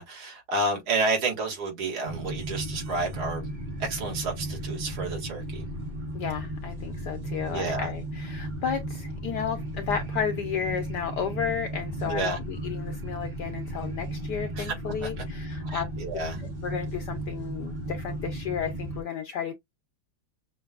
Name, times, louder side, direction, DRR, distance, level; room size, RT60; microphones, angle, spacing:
voice 1, 0.0-3.5 3.8-5.7 7.5-7.9 12.1-12.4 14.5-14.7 15.0-15.2 15.6-16.4, right 3 dB, 75° right, 2.9 m, -30 dB
sound 1, 2.1-19.0, right 1 dB, 35° right, 0.8 m, -35 dB
voice 2, 6.1-15.9 16.4-19.5, left 7 dB, 70° left, 1.0 m, -33 dB
6.6 x 2.6 x 2.3 m
omnidirectional pair, 2.4 m